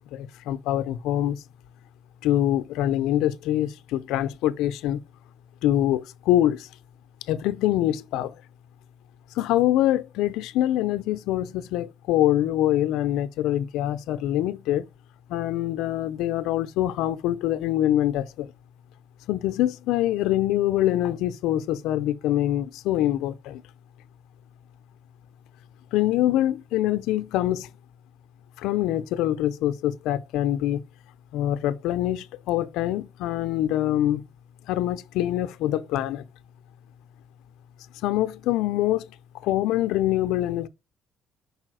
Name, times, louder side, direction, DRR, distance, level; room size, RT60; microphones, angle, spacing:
voice 1, 0.1-1.4 2.2-5.0 5.6-6.7 7.3-8.3 9.3-14.8 15.3-18.5 19.3-23.6 25.9-27.7 28.6-30.8 31.3-34.2 34.7-36.2 38.0-39.1 39.4-40.7, left 13 dB, 85° left, 0.5 m, -24 dB
5.3 x 4.8 x 6.1 m
cardioid pair, 105°, 0 cm